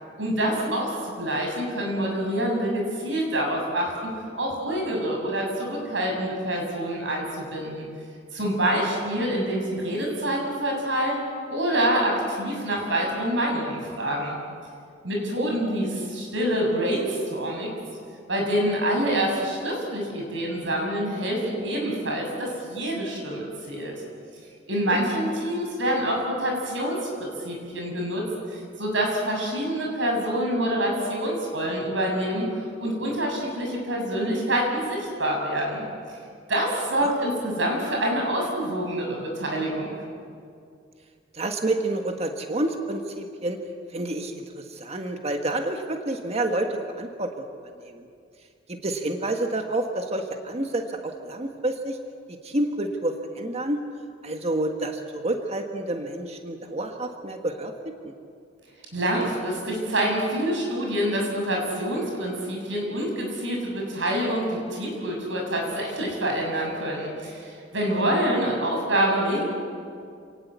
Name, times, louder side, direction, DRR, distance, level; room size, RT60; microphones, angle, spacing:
voice 1, 0.2-4.0 4.4-7.9 8.3-11.2 11.5-14.4 15.0-17.7 18.3-23.9 24.7-28.2 28.5-35.9 36.5-39.9 58.9-69.4, right 1 dB, 70° right, 0 dB, 7.2 m, -26 dB
voice 2, 41.3-43.6 43.9-47.4 47.8-48.1 48.7-52.0 52.4-53.8 54.2-57.7 58.0-58.1, right 1 dB, 35° right, 4 dB, 1.6 m, -29 dB
28.0 x 18.5 x 8.3 m, 2.3 s
head